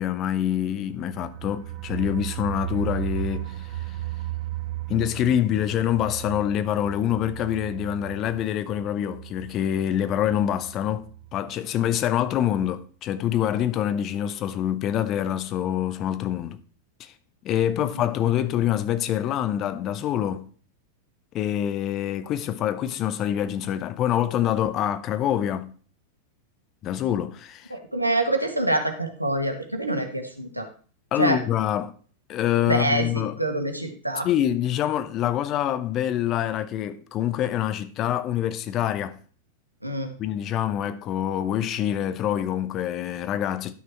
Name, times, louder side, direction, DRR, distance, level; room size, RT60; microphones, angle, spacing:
voice 1, 0.0-3.5 3.9-4.0 4.9-11.1 11.3-16.6 17.0-17.1 17.4-20.4 21.3-25.7 26.8-27.7 31.1-31.9 32.3-33.4 34.2-39.2 40.2-43.7, left 11 dB, 35° left, 0.8 m, -25 dB
sound 1, 0.9-11.6 11.9-12.0 12.3-12.4, right 15 dB, 50° right, 0.8 m, -35 dB
voice 2, 27.7-30.7 31.2-31.4 32.6-34.3 39.8-40.1, right 1 dB, 90° right, 1.4 m, -26 dB
11.0 x 6.3 x 4.4 m
figure-of-eight pair, 90°, 0 cm